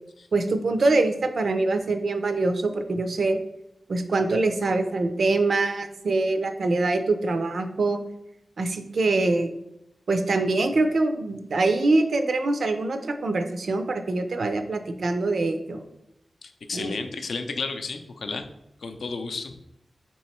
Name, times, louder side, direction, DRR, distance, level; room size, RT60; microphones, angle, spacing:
voice 1, 0.3-3.4 3.9-8.0 8.6-9.5 10.1-15.9 16.7-17.0, right 2 dB, 75° right, 7 dB, 0.4 m, -24 dB
voice 2, 16.4-18.5 18.8-19.6, left 4 dB, 85° left, 7 dB, 0.4 m, -32 dB
3.6 x 3.0 x 4.2 m, 0.83 s
wide cardioid pair, 90°, 0 cm